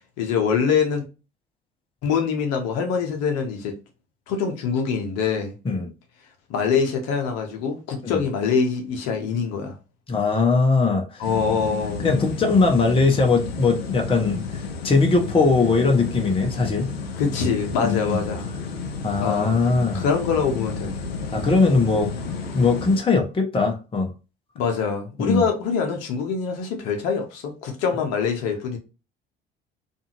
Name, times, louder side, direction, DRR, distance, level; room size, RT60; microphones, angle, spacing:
voice 1, 0.2-1.0 2.0-3.7 4.3-5.5 6.5-9.7 11.2-12.1 17.2-18.5 19.2-19.6 19.9-20.9 24.5-28.8, left 6 dB, 60° left, 0.9 m, -24 dB
voice 2, 10.1-11.2 12.0-16.9 17.8-18.2 19.0-20.0 21.3-22.1 22.5-24.1 25.2-25.4, left 4 dB, 20° left, 0.7 m, -20 dB
sound 1, 11.2-23.0, left 4 dB, 80° left, 0.5 m, -32 dB
2.6 x 2.5 x 2.8 m
figure-of-eight pair, 55°, 30 cm